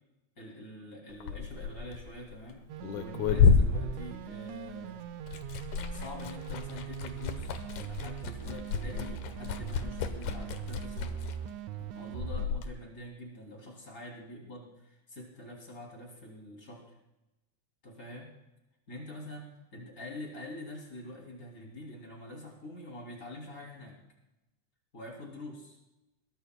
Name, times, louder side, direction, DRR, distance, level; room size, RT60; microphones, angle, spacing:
voice 1, 0.4-2.6 2.9-5.0 5.9-11.2 11.9-16.9 17.8-18.3 18.9-24.0 24.9-25.8, left 1 dB, 30° left, -1 dB, 3.2 m, -45 dB
Liquid, 1.1-4.8 5.1-12.7, left 6 dB, 80° left, 2.4 m, -30 dB
sound 1, 2.7-12.5, right 11 dB, 85° right, 2.1 m, -41 dB
22.0 x 19.5 x 2.2 m, 0.98 s
omnidirectional pair, 3.4 m